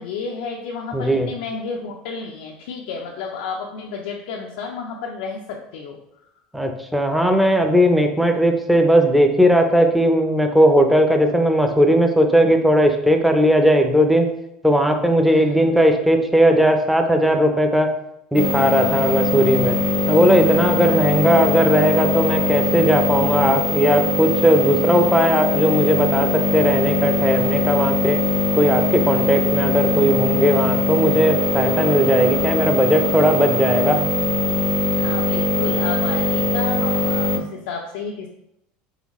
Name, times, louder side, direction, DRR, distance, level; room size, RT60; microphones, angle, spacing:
voice 1, 0.0-6.0 15.3-15.7 20.7-21.0 34.9-38.3, left 5 dB, 80° left, 0 dB, 0.5 m, -31 dB
voice 2, 0.9-1.3 6.5-14.3 14.6-17.9 18.3-19.8 20.1-28.2 28.6-34.0, equal, ahead, 4 dB, 0.6 m, -17 dB
sound 1, 18.4-37.4, left 2 dB, 25° right, 0.8 m, -21 dB
3.8 x 3.4 x 3.1 m, 0.80 s
supercardioid pair, 95°, 4 cm